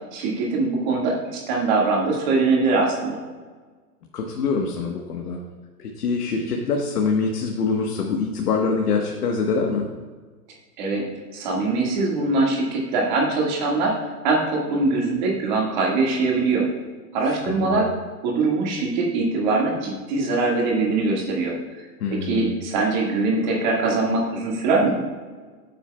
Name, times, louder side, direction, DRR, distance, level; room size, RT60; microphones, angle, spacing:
voice 1, 0.1-3.2 10.8-14.0 14.2-16.6 17.1-17.9 18.2-21.6 22.1-25.0, right 3 dB, 30° right, -2 dB, 1.8 m, -22 dB
voice 2, 4.1-5.4 5.8-9.9 17.4-17.8 22.0-22.6, left 4 dB, 80° left, 1 dB, 1.4 m, -24 dB
14.5 x 8.3 x 2.3 m, 1.4 s
hypercardioid pair, 170°, 46 cm